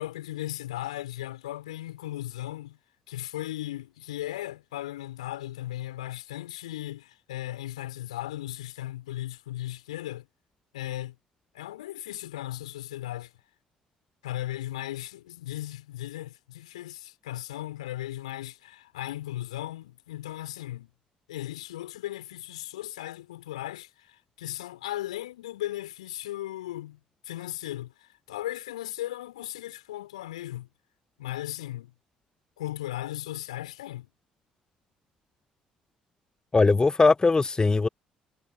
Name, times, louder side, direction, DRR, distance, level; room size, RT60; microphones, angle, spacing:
voice 1, 0.0-2.8 3.1-10.3 10.7-11.1 11.5-13.3 14.2-20.9 21.3-30.7 31.2-31.9 32.6-34.1, left 14 dB, 75° left, 5.0 m, -37 dB
voice 2, 36.5-37.9, left 3 dB, 20° left, 0.9 m, -20 dB
figure-of-eight pair, 50°, 4 cm